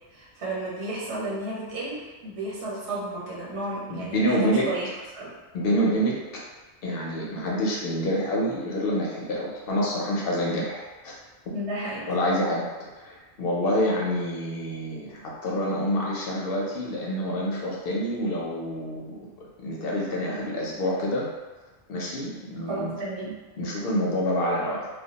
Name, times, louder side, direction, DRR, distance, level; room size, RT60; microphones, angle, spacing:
voice 1, 0.1-4.9 5.1-5.3 11.5-12.1 22.7-23.3, right 1 dB, 90° right, -7 dB, 1.1 m, -32 dB
voice 2, 3.9-4.7 5.5-6.1 6.8-11.1 11.5-11.6 12.1-12.6 13.0-19.3 19.6-21.3 21.9-22.9 23.2-24.9, equal, 65° left, -4 dB, 0.8 m, -27 dB
2.2 x 2.2 x 2.8 m, 1.2 s
omnidirectional pair, 1.1 m